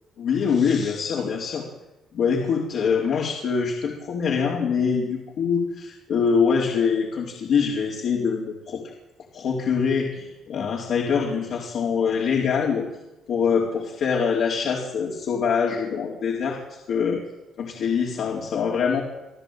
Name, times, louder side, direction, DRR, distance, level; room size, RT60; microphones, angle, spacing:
voice 1, 0.2-1.6 2.1-8.8 9.3-12.9 13.3-16.6 16.9-17.2 17.6-19.0, left 6 dB, 70° left, -3 dB, 4.4 m, -24 dB
27.0 x 14.0 x 9.3 m, 0.95 s
cardioid pair, 90°, 0 cm